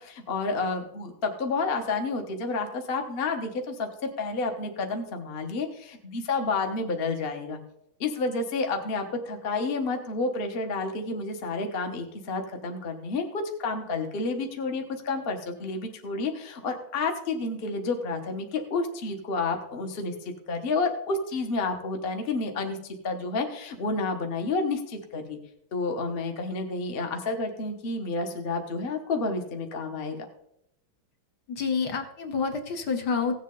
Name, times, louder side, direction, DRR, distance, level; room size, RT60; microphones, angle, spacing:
voice 1, 0.0-3.9 4.2-7.6 8.0-20.1 20.5-22.8 23.0-25.4 25.7-30.2, left 3 dB, 35° left, 4 dB, 1.0 m, -30 dB
voice 2, 31.5-33.3, left 5 dB, 60° left, 4 dB, 1.5 m, -28 dB
16.0 x 7.5 x 3.8 m, 0.76 s
omnidirectional pair, 2.3 m